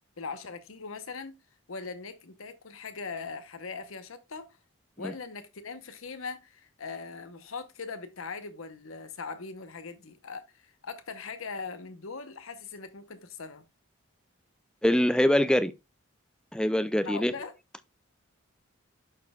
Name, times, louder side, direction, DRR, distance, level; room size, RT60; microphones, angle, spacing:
voice 1, 0.2-1.4 1.7-4.6 5.0-13.6 17.0-17.5, left 4 dB, 90° left, 0.9 m, -40 dB
voice 2, 14.8-15.7 16.5-17.3, left 1 dB, 5° left, 0.3 m, -24 dB
11.5 x 4.2 x 2.3 m
head